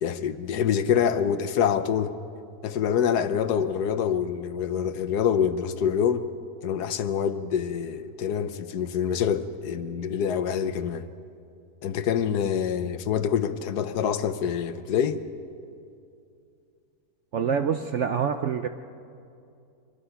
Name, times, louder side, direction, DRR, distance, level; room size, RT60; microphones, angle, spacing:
voice 1, 0.0-2.2 2.6-6.2 6.6-11.1 11.8-15.2, left 8 dB, 85° left, 1.4 m, -26 dB
voice 2, 17.3-18.7, right 7 dB, 60° right, 0.8 m, -26 dB
25.0 x 20.5 x 5.8 m
omnidirectional pair, 1.7 m